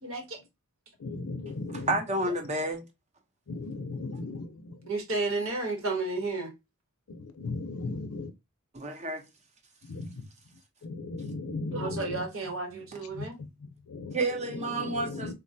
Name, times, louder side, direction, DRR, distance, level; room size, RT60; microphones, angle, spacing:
voice 1, 0.0-0.4 4.9-6.5 11.7-13.4, right 3 dB, 65° right, 1.2 m, -32 dB
voice 2, 1.0-2.0 3.5-4.9 7.1-8.3 9.8-10.3 10.8-12.2 13.1-14.2 14.5-15.3, left 3 dB, 70° left, 0.5 m, -37 dB
voice 3, 1.7-2.8 8.7-9.2 14.1-15.3, right 2 dB, 30° right, 0.7 m, -30 dB
3.7 x 2.2 x 2.6 m
head